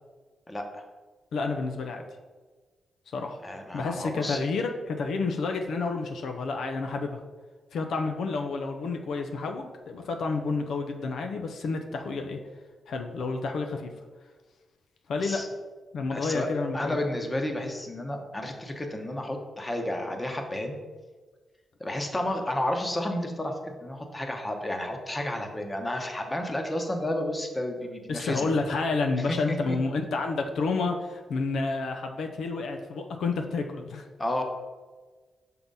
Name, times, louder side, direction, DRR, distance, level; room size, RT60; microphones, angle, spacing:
voice 1, 0.5-0.8 3.4-4.4 15.2-15.5 16.1-16.5 16.7-20.8 21.8-28.5 29.3-29.8 34.2-34.4, left 1 dB, 20° left, 3 dB, 1.0 m, -31 dB
voice 2, 1.3-2.0 3.1-3.4 3.7-7.2 7.7-12.4 12.9-13.9 15.1-15.4 15.9-17.0 28.1-34.1, left 3 dB, 75° left, 4 dB, 0.6 m, -30 dB
5.9 x 3.8 x 5.4 m, 1.4 s
cardioid pair, 85°, 0 cm